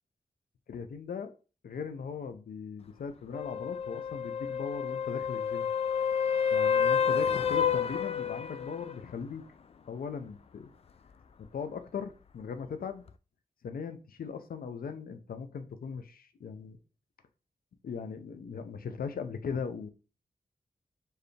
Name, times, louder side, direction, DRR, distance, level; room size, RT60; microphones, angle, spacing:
voice 1, 0.7-1.3 1.6-5.7 6.5-9.4 9.9-10.7 11.4-13.0 13.6-16.8 17.8-19.9, left 6 dB, 90° left, 9 dB, 0.6 m, -39 dB
sound 1, 3.3-9.0 13.1-13.2, left 7 dB, 45° left, 0.3 m, -29 dB
4.6 x 3.3 x 3.2 m, 0.34 s
wide cardioid pair, 115°, 15 cm